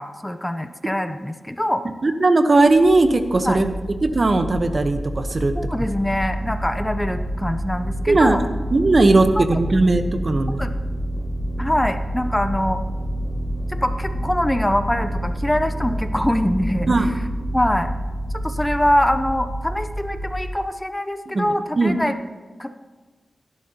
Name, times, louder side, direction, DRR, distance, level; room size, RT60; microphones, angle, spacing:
voice 1, 0.0-1.9 3.4-3.6 5.5-8.5 9.4-9.5 10.6-10.7 11.6-12.8 13.7-16.9 17.5-17.9 18.4-22.1 22.6-22.7, left 1 dB, 10° left, 9 dB, 0.7 m, -23 dB
voice 2, 2.0-3.7 4.0-5.5 8.1-8.4 8.7-10.6 16.9-17.1 21.3-22.0, right 2 dB, 45° right, 8 dB, 1.0 m, -18 dB
sound 1, 2.6-20.5, right 1 dB, 30° right, 3.8 m, -28 dB
17.5 x 11.0 x 2.9 m, 1.4 s
wide cardioid pair, 75°, 0 cm